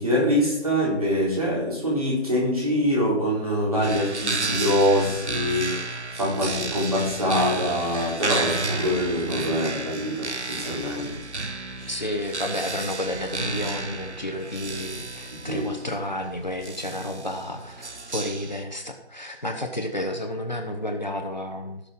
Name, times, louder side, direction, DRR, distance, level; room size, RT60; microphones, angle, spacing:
voice 1, 0.0-11.2 15.4-15.9, equal, 35° right, -4 dB, 3.8 m, -24 dB
sound 1, 3.8-18.6, right 3 dB, 80° right, 1.1 m, -32 dB
voice 2, 11.9-21.8, left 1 dB, 40° left, 4 dB, 1.3 m, -31 dB
17.0 x 6.7 x 3.8 m, 0.88 s
figure-of-eight pair, 170°, 33 cm